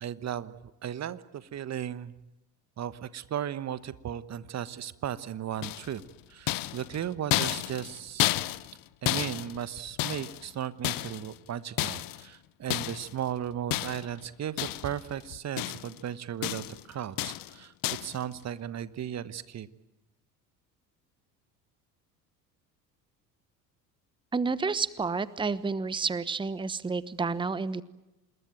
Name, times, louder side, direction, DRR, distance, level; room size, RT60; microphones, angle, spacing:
voice 1, 0.0-2.1 2.8-6.0 6.3-8.3 9.0-17.7 18.0-19.7, right 10 dB, 30° right, 15 dB, 1.2 m, -36 dB
sound 1, 5.6-6.1 6.5-8.8 9.0-10.5 10.8-11.4 11.8-12.3 12.7-13.1 13.7-14.2 14.6-15.1 15.3-16.0 16.4-16.8 17.2-17.5 17.8-18.2, left 16 dB, 40° left, 1.0 m, -31 dB
voice 2, 24.3-27.8, right 4 dB, 10° right, 18 dB, 1.0 m, -30 dB
27.0 x 21.0 x 9.1 m, 0.99 s
figure-of-eight pair, 60°, 49 cm